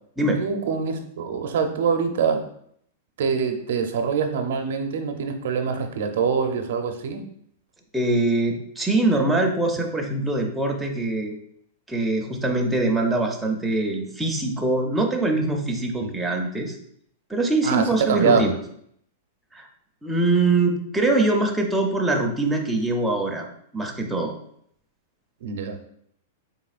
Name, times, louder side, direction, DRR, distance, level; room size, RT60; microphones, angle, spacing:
voice 1, 0.4-2.4 3.2-7.2 16.0-16.2 17.6-18.5 25.4-25.8, right 6 dB, 70° right, 6 dB, 0.6 m, -24 dB
voice 2, 7.9-11.3 11.9-16.8 17.3-18.6 19.5-19.7 20.0-23.5 23.7-24.3, right 2 dB, 5° right, 1 dB, 0.4 m, -23 dB
4.1 x 3.5 x 2.4 m, 0.68 s
supercardioid pair, 165°, 0 cm